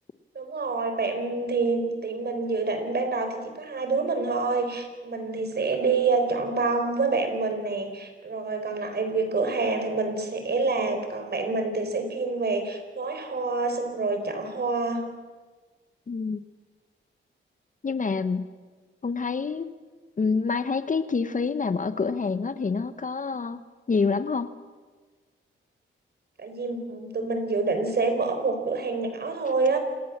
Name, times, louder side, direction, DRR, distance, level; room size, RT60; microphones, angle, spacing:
voice 1, 0.3-15.1 26.4-29.8, right 3 dB, 50° right, 6 dB, 4.8 m, -27 dB
voice 2, 16.1-16.4 17.8-18.5 19.0-19.7 20.2-23.6 23.9-24.5, left 4 dB, 40° left, 12 dB, 1.1 m, -27 dB
27.5 x 20.0 x 7.4 m, 1.4 s
cardioid pair, 90°, 21 cm